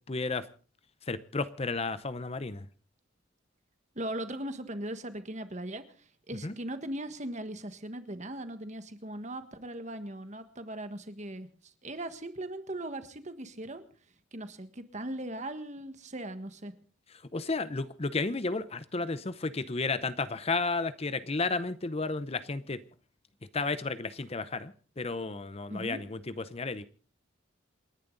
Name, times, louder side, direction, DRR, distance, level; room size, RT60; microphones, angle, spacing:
voice 1, 0.1-0.5 1.1-2.7 6.4-6.5 17.3-22.8 23.5-26.8, left 3 dB, 30° left, 0.7 m, -32 dB
voice 2, 3.9-11.5 11.8-13.8 14.3-16.7 25.7-26.0, right 1 dB, 35° right, 1.6 m, -39 dB
28.5 x 11.0 x 3.9 m
head